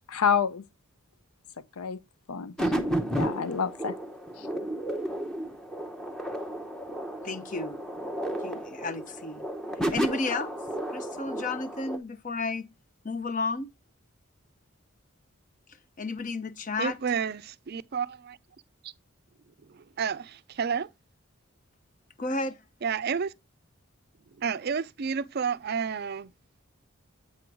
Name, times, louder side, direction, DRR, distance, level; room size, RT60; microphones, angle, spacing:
voice 1, 0.1-0.6 1.8-2.0 2.3-2.7 3.1-3.9 4.4-4.5, left 7 dB, 85° left, 0.6 m, -28 dB
sound 1, 2.6-12.0, right 1 dB, ahead, 0.7 m, -33 dB
voice 2, 7.2-7.8 8.4-9.4 9.9-10.5 10.9-12.7 13.0-13.7 15.7-17.0 22.2-22.6, left 3 dB, 35° left, 0.6 m, -32 dB
voice 3, 16.8-18.4 18.8-18.9 19.7-20.9 22.8-23.3 24.4-26.3, right 6 dB, 45° right, 0.4 m, -30 dB
8.4 x 3.8 x 4.5 m
head